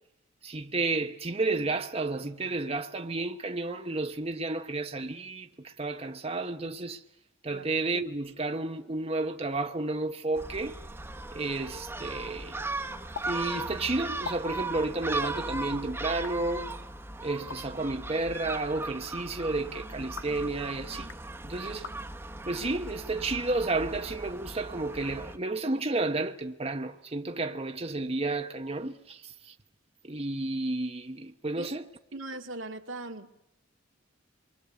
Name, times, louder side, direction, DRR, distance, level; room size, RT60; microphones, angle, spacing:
voice 1, 0.4-7.0 7.4-10.8 11.3-12.7 13.3-16.7 17.2-21.1 21.4-21.9 22.5-29.5 30.0-31.9, right 2 dB, 30° right, 1.0 m, -32 dB
Gull seagull, 10.3-25.4, right 2 dB, 10° right, 1.3 m, -38 dB
sound 1, 13.1-13.3 13.5-13.6 14.1-14.4 15.1-15.3 16.0-16.3 17.3-17.6 18.6-18.9 20.0-20.4 20.9-21.2 21.8-22.0 22.6-22.9 23.6-24.3, left 5 dB, 85° left, 1.6 m, -43 dB
voice 2, 32.1-33.3, right 2 dB, 80° right, 2.1 m, -39 dB
27.0 x 23.5 x 8.2 m
head